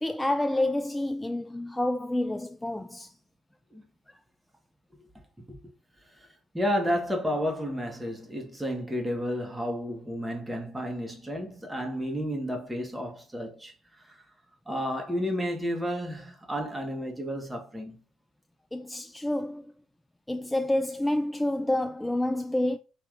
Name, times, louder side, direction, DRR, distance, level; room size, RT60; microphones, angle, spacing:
voice 1, 0.0-3.1 18.7-19.6 20.3-22.8, left 1 dB, 10° left, 0.3 m, -28 dB
voice 2, 6.5-14.2 14.7-18.0, equal, 10° right, 1.4 m, -31 dB
5.2 x 3.4 x 2.5 m
hypercardioid pair, 55°, 0 cm